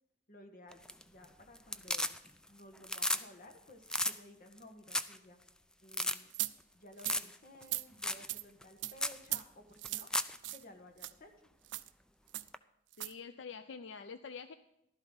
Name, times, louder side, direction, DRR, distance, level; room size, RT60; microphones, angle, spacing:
voice 1, 0.3-2.1 2.5-5.4 5.8-6.3 6.7-10.1 10.5-11.3, left 1 dB, 50° left, 5 dB, 1.5 m, -56 dB
sound 1, 0.7-1.2 1.5-2.5 2.8-3.2 3.5-3.6 3.9-4.1 4.6-4.7 4.9-5.2 5.5-5.6 5.9-6.2 7.0-7.3 7.6-7.7 8.0-8.3 8.6-8.7 9.0-9.2 9.8-10.4 12.5-12.6, left 1 dB, 5° left, 0.4 m, -34 dB
sound 2, 6.3-6.5 7.0-7.2 7.6-7.8 8.3-8.4 8.8-8.9 9.2-9.4 9.8-10.1 10.4-10.6 11.0-11.1 11.7-11.9 12.3-12.5 12.9-13.1, right 17 dB, 70° right, 0.5 m, -38 dB
voice 2, 13.0-14.5, left 5 dB, 75° left, 11 dB, 0.5 m, -46 dB
14.5 x 12.0 x 4.0 m, 0.84 s
head